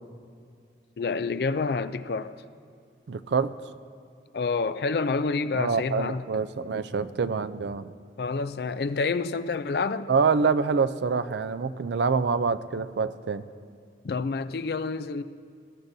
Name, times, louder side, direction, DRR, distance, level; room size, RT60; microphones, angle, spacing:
voice 1, 1.0-2.4 4.3-6.2 8.2-10.1 14.0-15.2, left 4 dB, 60° left, 0.4 m, -28 dB
voice 2, 3.1-3.5 5.5-7.9 10.1-13.4, right 5 dB, 75° right, 0.4 m, -26 dB
20.0 x 13.0 x 2.7 m
head